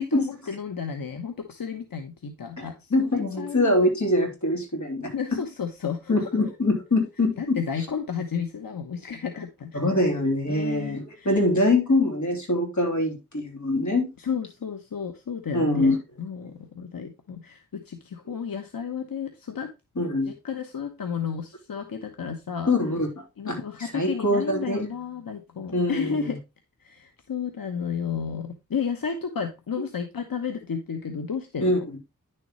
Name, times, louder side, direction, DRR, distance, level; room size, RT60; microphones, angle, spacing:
voice 1, 0.0-3.7 5.1-6.3 7.4-9.8 10.5-11.4 14.2-19.7 20.3-22.7 23.4-26.4 26.8-31.9, left 7 dB, 85° left, 1.1 m, -32 dB
voice 2, 2.6-5.4 6.1-7.6 9.7-14.1 15.5-16.0 20.0-20.3 22.7-23.1 23.5-24.9 25.7-26.4 31.6-32.0, left 1 dB, 55° left, 3.5 m, -24 dB
10.0 x 6.9 x 3.1 m
wide cardioid pair, 75°, 34 cm